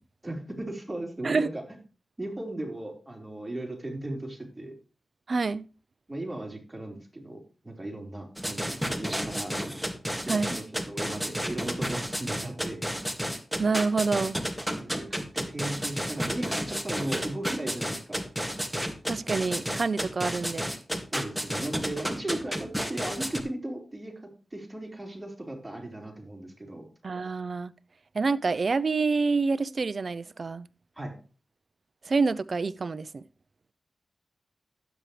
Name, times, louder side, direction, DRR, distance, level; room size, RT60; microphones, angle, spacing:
voice 1, 0.2-1.6 2.2-4.8 6.1-9.6 10.3-12.9 14.8-18.2 21.1-26.9 31.0-31.1, right 1 dB, 20° right, 4.5 m, -37 dB
voice 2, 5.3-5.7 10.3-10.5 13.6-14.4 18.7-20.7 27.0-27.7 28.1-30.7 32.0-33.2, right 4 dB, 60° right, 0.6 m, -27 dB
sound 1, 8.4-23.4, equal, ahead, 2.1 m, -31 dB
12.5 x 9.0 x 3.3 m
cardioid pair, 60°, 0 cm